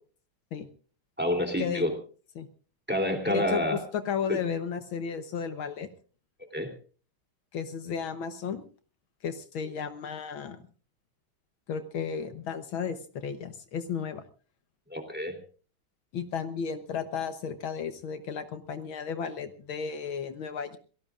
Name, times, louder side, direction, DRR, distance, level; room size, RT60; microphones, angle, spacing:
voice 1, 1.2-1.9 2.9-3.8 4.3-4.4 6.5-6.7 14.9-15.4, left 1 dB, 5° right, 4 dB, 3.0 m, -28 dB
voice 2, 3.3-5.9 7.5-8.6 9.2-10.6 11.7-14.2 16.1-20.8, left 7 dB, 70° left, 9 dB, 1.8 m, -34 dB
26.5 x 18.0 x 2.5 m, 0.40 s
omnidirectional pair, 2.3 m